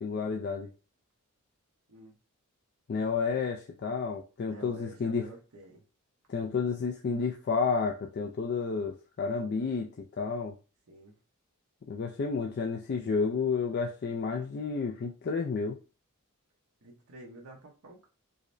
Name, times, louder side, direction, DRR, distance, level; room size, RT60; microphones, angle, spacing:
voice 1, 0.0-0.7 2.9-5.3 6.3-9.9 10.2-10.5 11.9-15.8, left 5 dB, 45° left, 0.4 m, -31 dB
voice 2, 4.4-5.8 10.9-11.2 16.8-18.1, right 1 dB, 70° right, 0.8 m, -49 dB
4.8 x 2.1 x 2.5 m
head